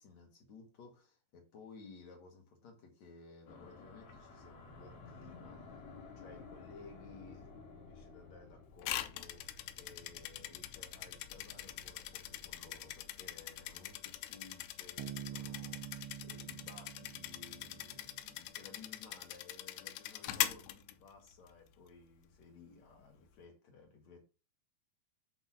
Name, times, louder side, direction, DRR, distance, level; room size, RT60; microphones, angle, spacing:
voice 1, 0.0-5.6 6.2-24.2, left 4 dB, 50° left, 2.5 m, -57 dB
sound 1, 3.5-16.0, left 3 dB, 70° left, 3.4 m, -55 dB
sound 2, 8.8-21.5, left 14 dB, 90° left, 2.7 m, -42 dB
Bass guitar, 15.0-18.6, right 11 dB, 90° right, 2.7 m, -47 dB
8.5 x 3.6 x 5.9 m
omnidirectional pair, 4.7 m